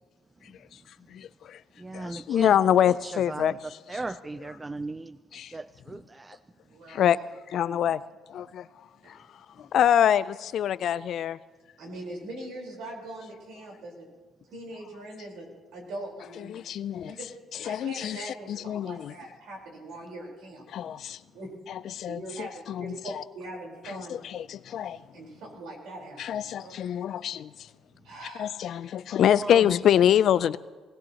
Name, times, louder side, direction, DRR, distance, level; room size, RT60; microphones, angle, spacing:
voice 1, 0.4-1.6 1.9-4.0 5.3-5.6 6.9-7.2 7.5-11.4 16.3-17.2 17.5-19.2 20.7-21.3 21.7-23.2 23.8-25.2 26.2-27.7 28.3-30.6, left 10 dB, 65° left, 0.4 m, -26 dB
voice 2, 1.8-2.5 3.0-3.5 3.9-5.2 5.5-6.4 29.4-29.6, right 2 dB, 20° right, 0.4 m, -37 dB
voice 3, 6.7-7.0 11.8-14.1 14.5-16.6 17.0-17.3 17.6-20.9 21.3-21.5 22.0-24.2 25.1-26.8 28.0-28.5, right 1 dB, 80° right, 4.3 m, -41 dB
19.0 x 19.0 x 3.0 m
supercardioid pair, 70°, 0 cm